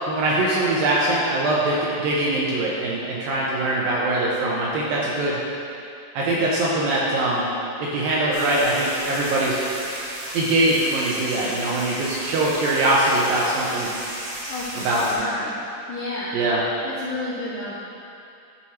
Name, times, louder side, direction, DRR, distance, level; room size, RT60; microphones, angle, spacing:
voice 1, 0.1-5.4 6.1-7.5 7.8-9.6 10.3-13.9 14.9-15.2 16.3-16.6, right 1 dB, 75° right, -5 dB, 2.2 m, -22 dB
sound 1, 8.3-15.1, right 1 dB, 55° right, 2.7 m, -34 dB
voice 2, 14.5-15.6 15.9-16.3 16.8-17.8, left 2 dB, 80° left, -7 dB, 1.9 m, -31 dB
12.5 x 6.1 x 2.9 m, 2.6 s
omnidirectional pair, 4.9 m